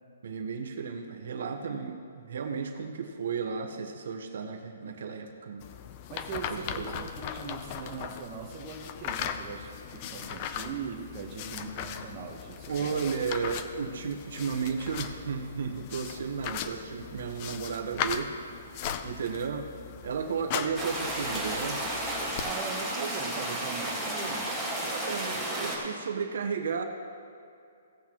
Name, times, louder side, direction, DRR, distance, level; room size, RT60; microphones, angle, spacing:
voice 1, 0.2-5.7 6.5-7.1 12.7-18.3 19.0-19.7 20.0-21.8 23.0-23.1 24.8-26.8, right 6 dB, 65° right, 5 dB, 1.0 m, -34 dB
sound 1, 5.6-22.5, left 8 dB, 30° left, 0.5 m, -38 dB
voice 2, 6.1-13.1 22.4-24.6 25.3-25.8, right 5 dB, 25° right, 0 dB, 1.1 m, -40 dB
sound 2, 20.8-25.8, right 1 dB, 5° left, 1.7 m, -32 dB
17.0 x 8.2 x 3.0 m, 2.5 s
hypercardioid pair, 170°, 0 cm